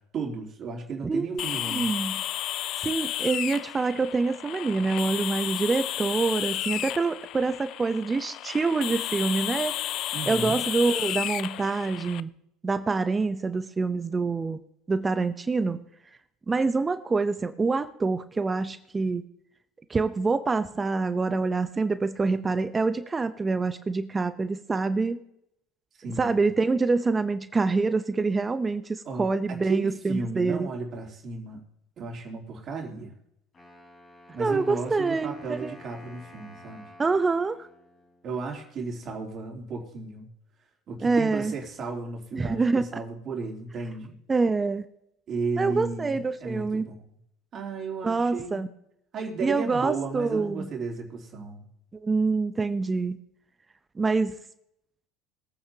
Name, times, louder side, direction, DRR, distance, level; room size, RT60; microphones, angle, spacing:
voice 1, 0.1-1.9 10.1-10.6 26.0-26.4 29.0-31.6 32.0-33.1 34.3-36.9 38.2-40.3 40.9-44.2 45.3-47.1 47.5-48.7 49.1-51.7, right 4 dB, 45° right, 0 dB, 3.2 m, -34 dB
voice 2, 1.0-2.2 2.8-9.7 10.3-12.3 12.6-14.6 14.9-15.8 16.5-19.2 19.9-25.2 26.2-30.7 34.4-35.7 37.0-37.7 41.0-41.5 42.3-42.9 44.3-44.8 45.6-46.8 48.0-48.7 49.4-50.7 52.0-53.2 54.0-54.4, right 4 dB, 20° right, 11 dB, 0.7 m, -26 dB
sound 1, 1.4-12.2, left 13 dB, 55° left, 0.4 m, -32 dB
Wind instrument woodwind instrument, 33.5-38.5, left 1 dB, 25° left, 4.5 m, -51 dB
22.0 x 8.9 x 2.9 m, 0.77 s
supercardioid pair, 95°, 0 cm